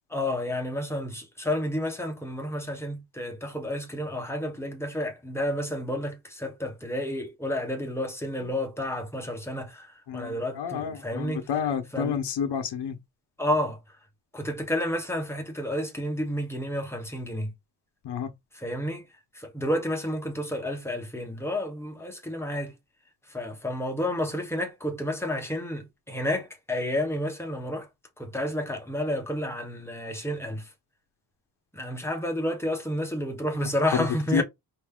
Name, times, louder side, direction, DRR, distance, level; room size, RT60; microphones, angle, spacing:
voice 1, 0.1-11.4 11.9-12.2 13.4-13.8 14.3-17.5 18.5-19.0 19.3-22.7 23.3-27.9 28.2-30.7 31.7-34.4, left 1 dB, 5° left, 1.1 m, -30 dB
voice 2, 10.1-13.0 18.0-18.3 33.6-34.1 34.3-34.4, left 7 dB, 85° left, 0.9 m, -29 dB
5.1 x 2.8 x 3.6 m
wide cardioid pair, 175°, 40 cm